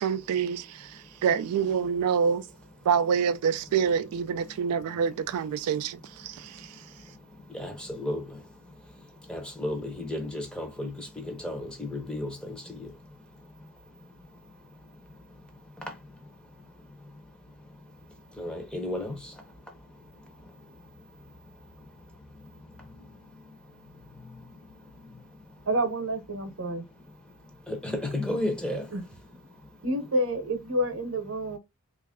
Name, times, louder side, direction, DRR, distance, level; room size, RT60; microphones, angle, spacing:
voice 1, 0.0-2.4 2.9-6.8, right 7 dB, 90° right, 0.3 m, -27 dB
voice 2, 7.5-8.4 9.3-12.9 18.4-19.2 27.7-28.9, left 1 dB, 5° left, 0.7 m, -33 dB
voice 3, 25.7-26.8 27.9-28.0 28.9-29.0 29.8-31.6, right 1 dB, 65° right, 0.8 m, -29 dB
3.2 x 2.5 x 3.5 m
head